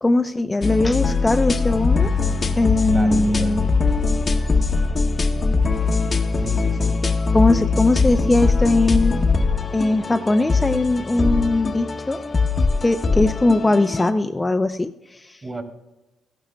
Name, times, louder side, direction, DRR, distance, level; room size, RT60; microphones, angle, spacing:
voice 1, 0.0-2.1 2.6-3.6 7.3-9.2 9.7-12.2 12.8-15.4, left 2 dB, 15° left, 7 dB, 0.5 m, -20 dB
sound 1, 0.6-14.1, left 4 dB, 35° left, 0.8 m, -21 dB
voice 2, 2.9-3.6 6.4-7.1 15.4-15.6, right 2 dB, 30° right, 4 dB, 2.6 m, -32 dB
15.5 x 12.0 x 2.3 m, 1.0 s
cardioid pair, 90°, 0 cm